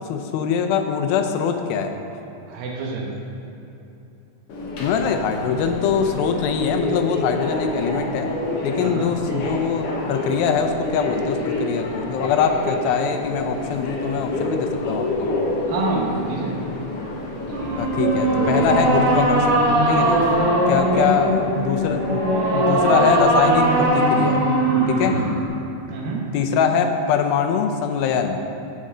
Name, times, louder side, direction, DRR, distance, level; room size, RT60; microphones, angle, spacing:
voice 1, 0.1-1.9 4.8-8.3 8.6-15.3 17.8-20.2 20.7-22.2 22.5-24.4 24.9-25.2 26.3-28.4, left 6 dB, 90° left, 5 dB, 2.5 m, -23 dB
voice 2, 2.5-3.1 8.8-9.1 10.2-10.3 15.7-16.6 20.9-21.1 25.0-25.3 25.9-26.3, right 3 dB, 75° right, -2 dB, 3.0 m, -28 dB
Subway metro underground, 4.5-23.9, left 1 dB, 65° left, 1.5 m, -28 dB
sound 1, 17.5-25.5, right 1 dB, 45° right, 2.5 m, -20 dB
16.0 x 5.4 x 3.8 m, 2.9 s
omnidirectional pair, 4.2 m